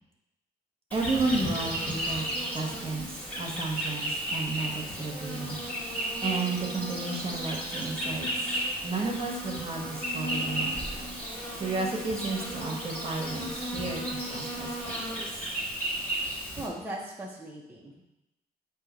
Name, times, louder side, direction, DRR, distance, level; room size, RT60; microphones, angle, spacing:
Insect, 0.9-16.7, right 1 dB, 10° left, 1.5 m, -34 dB
voice 1, 0.9-2.3 2.5-5.9 6.2-8.5 8.8-10.8 11.6-15.1, right 3 dB, 35° right, 0 dB, 1.2 m, -33 dB
voice 2, 16.6-18.0, right 1 dB, 10° right, -4 dB, 0.7 m, -38 dB
7.8 x 2.9 x 5.1 m, 0.92 s
cardioid pair, 145°, 16 cm